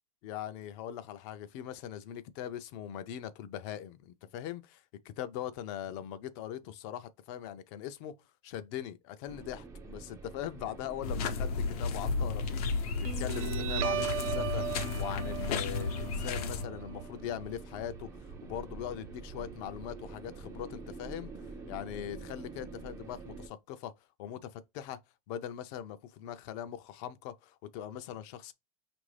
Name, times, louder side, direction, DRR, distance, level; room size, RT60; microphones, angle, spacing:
voice 1, 0.2-8.1 8.4-21.3 21.7-23.9 24.2-25.0 25.3-28.5, left 10 dB, 55° left, 0.5 m, -41 dB
sound 1, 9.3-23.5, right 4 dB, 15° right, 0.4 m, -47 dB
sound 2, 11.0-16.7, left 4 dB, 85° left, 0.8 m, -33 dB
Guitar, 13.0-20.0, right 8 dB, 65° right, 0.5 m, -38 dB
5.2 x 2.6 x 3.2 m
supercardioid pair, 135°, 19 cm